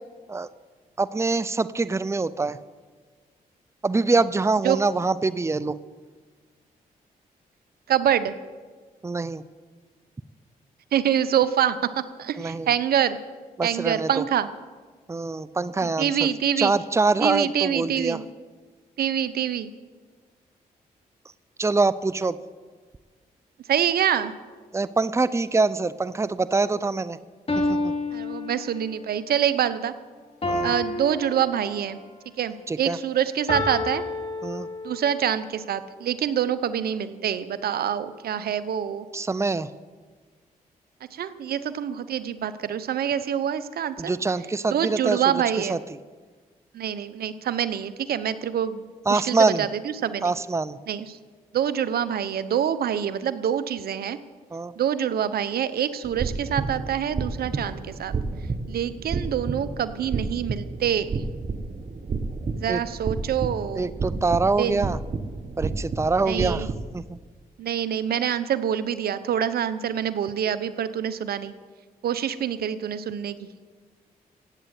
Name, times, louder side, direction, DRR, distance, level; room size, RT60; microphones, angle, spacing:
voice 1, 1.0-2.6 3.8-5.7 9.0-9.4 12.4-12.7 13.6-14.2 15.1-18.2 21.6-22.4 24.7-27.2 27.6-27.9 30.5-30.7 32.7-33.0 34.4-34.7 39.1-39.7 44.0-45.8 49.1-49.7 50.2-50.8 54.5-54.7 62.7-62.8 63.8-65.0 65.6-67.2, right 3 dB, 15° right, 16 dB, 0.6 m, -25 dB
voice 2, 7.9-8.3 10.9-11.8 12.2-13.2 13.6-14.5 15.8-16.7 17.2-18.2 19.0-19.7 23.7-24.3 28.1-29.9 30.6-32.0 32.4-34.0 34.8-39.0 41.1-44.1 44.7-45.8 46.7-49.7 50.0-50.3 50.9-51.2 51.5-54.2 54.8-58.1 58.7-61.2 62.6-63.9 64.6-64.9 66.3-66.7 67.6-71.5 72.0-73.4, right 9 dB, 75° right, 14 dB, 0.9 m, -26 dB
sound 1, 26.7-26.8 27.5-29.1 30.4-32.1 33.5-35.1, left 2 dB, 40° left, 2.7 m, -29 dB
sound 2, 56.0-66.9, right 4 dB, 50° right, 1.3 m, -31 dB
16.0 x 8.9 x 8.3 m, 1.5 s
supercardioid pair, 55°, 16 cm